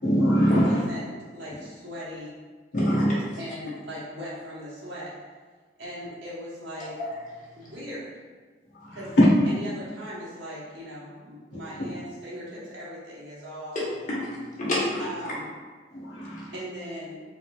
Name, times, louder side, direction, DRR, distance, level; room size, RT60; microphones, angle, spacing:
voice 1, 0.0-0.8 2.7-3.1 8.7-9.3 11.8-11.9 15.9-16.5, equal, 85° left, -8 dB, 1.3 m, -22 dB
voice 2, 0.6-2.4 3.4-5.1 5.8-6.9 7.6-8.2 8.9-9.2 9.6-14.0 15.0-15.5 16.5-17.2, equal, 85° right, -7 dB, 1.4 m, -39 dB
voice 3, 2.7-3.2 7.0-7.1 7.4-7.7 13.7-15.1, left 1 dB, 45° left, -7 dB, 1.1 m, -30 dB
4.0 x 3.2 x 2.5 m, 1.4 s
head